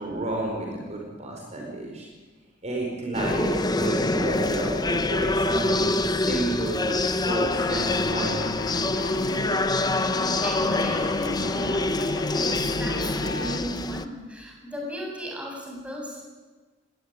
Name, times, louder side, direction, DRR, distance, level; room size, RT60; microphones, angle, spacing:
voice 1, 0.0-2.1 2.6-8.5, right 1 dB, 35° right, 0 dB, 5.1 m, -31 dB
sound 1, 3.1-14.0, left 2 dB, 20° left, 0.9 m, -26 dB
sound 2, 7.5-13.6, left 2 dB, 80° left, 1.8 m, -34 dB
voice 2, 10.0-16.3, equal, 5° right, -1 dB, 7.6 m, -36 dB
20.5 x 18.5 x 10.0 m, 1.3 s
head